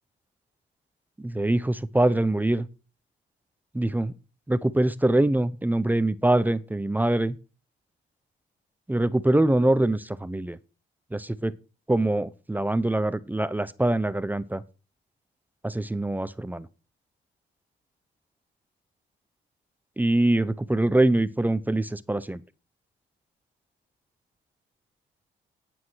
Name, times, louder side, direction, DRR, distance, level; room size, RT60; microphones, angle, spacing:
voice 1, 1.2-2.7 3.7-4.1 4.5-7.4 8.9-10.6 11.1-11.5 11.9-14.6 15.6-16.7 20.0-22.4, right 1 dB, 10° right, 0.7 m, -24 dB
9.8 x 9.1 x 6.3 m
cardioid pair, 90°, 20 cm